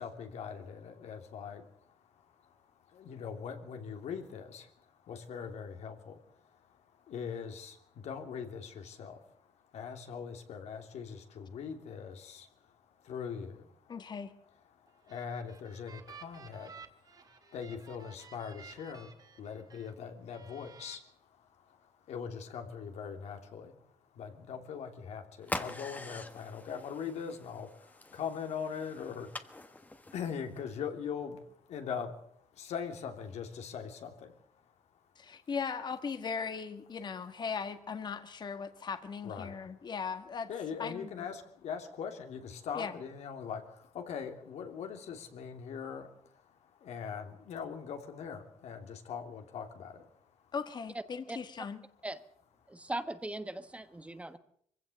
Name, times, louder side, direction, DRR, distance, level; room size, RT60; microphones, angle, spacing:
voice 1, 0.0-14.1 14.5-29.8 30.1-35.4 39.2-39.9 40.5-50.5 52.7-52.8 54.1-54.4, left 7 dB, 80° left, 5 dB, 3.2 m, -42 dB
voice 2, 13.9-14.3 35.2-40.5 40.8-41.1 42.7-42.9 50.5-51.8, left 6 dB, 40° left, 9 dB, 1.7 m, -38 dB
sound 1, 14.9-19.9 20.3-21.0, right 5 dB, 35° right, 2.0 m, -54 dB
sound 2, 25.4-30.6, left 2 dB, 15° left, 1.5 m, -44 dB
voice 3, 52.7-54.4, right 1 dB, 10° right, 10 dB, 1.2 m, -39 dB
23.5 x 16.0 x 8.0 m, 0.67 s
cardioid pair, 130°, 11 cm